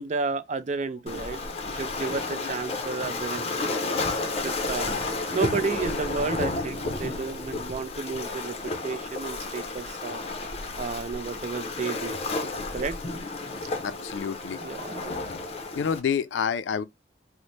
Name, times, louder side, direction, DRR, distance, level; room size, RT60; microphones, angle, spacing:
voice 1, 0.0-3.9 4.3-4.9 5.3-10.2 10.8-12.2 12.7-13.0 14.6-15.1, right 4 dB, 40° right, 0.4 m, -32 dB
Waves surf, 1.1-16.0, left 3 dB, 35° left, 0.6 m, -32 dB
voice 2, 13.8-14.6 15.8-16.8, left 7 dB, 80° left, 0.4 m, -28 dB
3.9 x 2.0 x 3.1 m
head